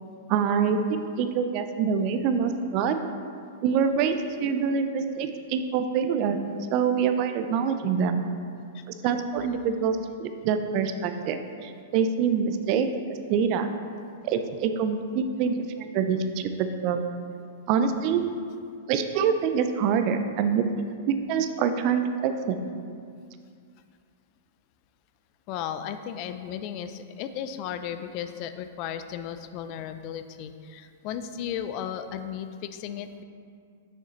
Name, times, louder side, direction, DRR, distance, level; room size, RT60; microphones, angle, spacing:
voice 1, 0.3-3.0 3.6-6.4 6.7-8.2 9.0-12.9 13.3-13.7 14.2-17.0 17.7-18.2 18.9-20.6 21.1-22.6, right 6 dB, 45° right, 8 dB, 0.5 m, -25 dB
voice 2, 25.5-33.2, left 9 dB, 45° left, 10 dB, 0.4 m, -35 dB
6.6 x 6.3 x 3.1 m, 2.3 s
hypercardioid pair, 105°, 0 cm